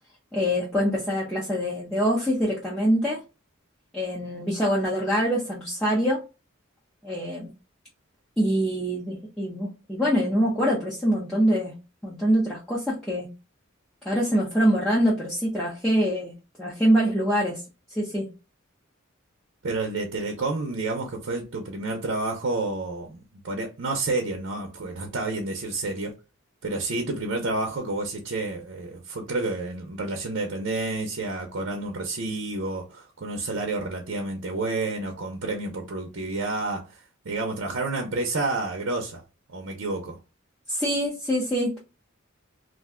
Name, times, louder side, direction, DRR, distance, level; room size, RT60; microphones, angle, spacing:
voice 1, 0.3-3.2 3.9-6.2 7.0-7.5 8.4-11.7 12.0-13.3 14.0-16.3 16.6-17.6 18.0-18.3 40.7-41.8, equal, 5° left, 0.7 m, -24 dB
voice 2, 19.6-26.1 26.6-39.2 39.5-40.2, right 2 dB, 60° right, 0.6 m, -30 dB
2.5 x 2.2 x 3.6 m
head